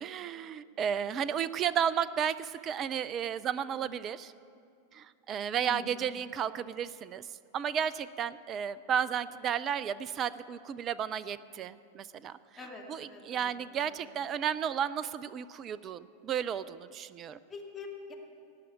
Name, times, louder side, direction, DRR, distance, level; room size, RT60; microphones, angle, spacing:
voice 1, 0.0-4.3 4.9-7.3 7.5-12.4 12.9-17.4, right 8 dB, 30° right, 17 dB, 0.4 m, -33 dB
voice 2, 5.6-6.0 12.5-14.0 17.5-18.1, left 4 dB, 15° left, -1 dB, 2.3 m, -46 dB
17.5 x 6.2 x 9.1 m, 2.4 s
figure-of-eight pair, 90°, 0 cm